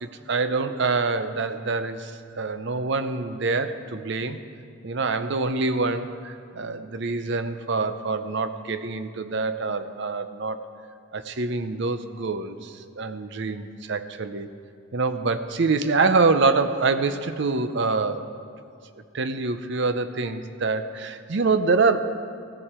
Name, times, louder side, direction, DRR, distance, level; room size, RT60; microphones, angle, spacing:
voice 1, 0.0-4.4 4.8-10.6 11.1-14.5 14.9-18.2 19.1-22.1, right 4 dB, 55° right, 10 dB, 0.6 m, -25 dB
15.5 x 11.5 x 4.4 m, 2.4 s
head